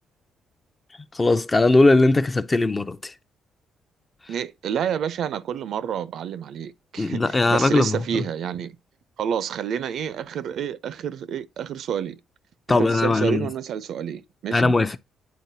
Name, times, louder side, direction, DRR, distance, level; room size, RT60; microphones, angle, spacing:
voice 1, 1.1-3.1 7.0-8.2 12.7-13.5 14.5-15.0, left 2 dB, 25° left, 0.5 m, -19 dB
voice 2, 4.3-8.8 9.2-12.2 12.7-14.8, right 8 dB, 70° right, 0.5 m, -29 dB
9.3 x 3.9 x 2.7 m
cardioid pair, 90°, 0 cm